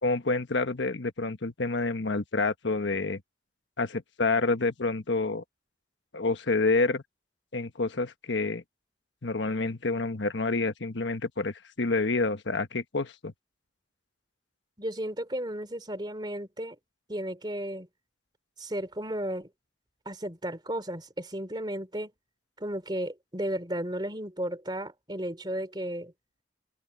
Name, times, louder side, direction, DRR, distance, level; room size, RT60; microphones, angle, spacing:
voice 1, 0.0-3.2 3.8-5.4 6.1-7.0 7.5-8.6 9.2-13.3, left 3 dB, 75° left, 1.2 m, -28 dB
voice 2, 14.8-16.8 17.1-17.9 18.6-19.5 20.0-22.1 22.6-26.1, right 1 dB, 25° right, 2.9 m, -34 dB
head